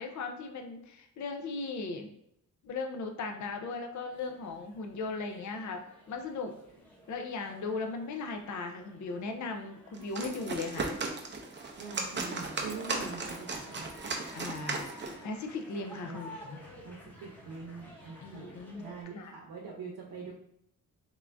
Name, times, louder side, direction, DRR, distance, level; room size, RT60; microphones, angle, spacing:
voice 1, 0.0-2.1 2.6-5.8 6.1-6.5 7.1-10.9 14.3-14.9 15.2-16.6 18.2-18.8 19.1-19.3, left 3 dB, 55° left, 4 dB, 0.5 m, -37 dB
sound 1, 4.1-19.0, equal, 5° left, 0.8 m, -53 dB
sound 2, 9.9-15.2, right 3 dB, 30° right, 0.5 m, -36 dB
voice 2, 11.8-13.9 16.1-16.3 16.8-20.3, right 5 dB, 85° right, -2 dB, 0.8 m, -44 dB
3.6 x 2.5 x 3.3 m, 0.74 s
wide cardioid pair, 140°, 36 cm